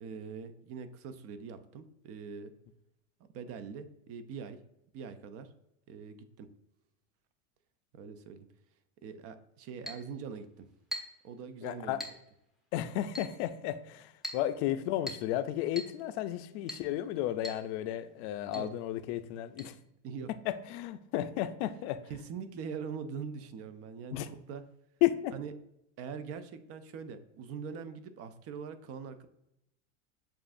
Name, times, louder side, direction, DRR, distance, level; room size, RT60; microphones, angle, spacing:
voice 1, 0.0-2.5 3.3-4.6 4.9-5.5 5.9-6.5 7.9-8.5 9.0-10.7 11.2-12.0 18.5-18.7 20.0-20.3 22.1-24.6 25.3-25.5 26.0-29.3, right 6 dB, 40° right, 0.5 m, -43 dB
Chink clink, 9.9-10.1 10.9-11.2 12.0-12.2 13.2-13.4 14.2-14.5 15.1-15.3 15.8-16.0 16.7-16.9 17.4-17.7 17.9-18.0 18.5-18.7 19.6-19.7, equal, ahead, 0.7 m, -41 dB
voice 2, 11.6-12.0 12.7-14.1 14.3-19.7 20.5-22.0 24.1-24.3 25.0-25.3, left 13 dB, 60° left, 0.5 m, -33 dB
7.0 x 2.5 x 2.5 m
supercardioid pair, 110°, 39 cm